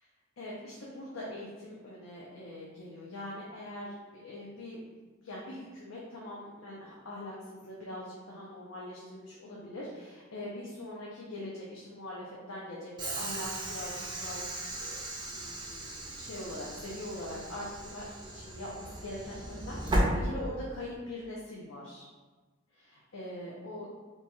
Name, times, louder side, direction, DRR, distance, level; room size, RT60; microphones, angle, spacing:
voice 1, 0.4-4.9 5.2-14.4 14.7-14.9 15.2-22.1 22.7-23.9, left 1 dB, 85° left, -5 dB, 0.6 m, -42 dB
Train / Sliding door, 13.0-21.0, right 1 dB, 25° right, 0.5 m, -35 dB
3.0 x 2.3 x 4.1 m, 1.3 s
head